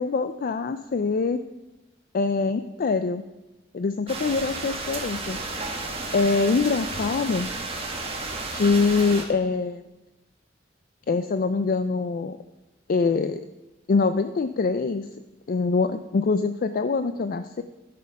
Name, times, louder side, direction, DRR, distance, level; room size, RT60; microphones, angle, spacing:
voice 1, 0.0-1.4 2.1-3.2 3.7-5.4 6.1-7.5 8.5-9.8 11.1-12.4 12.9-13.4 13.9-15.1 15.5-17.6, left 4 dB, 50° left, 10 dB, 0.4 m, -24 dB
sound 1, 4.1-9.2, right 3 dB, 30° right, 1.6 m, -32 dB
12.5 x 6.8 x 5.2 m, 1.0 s
head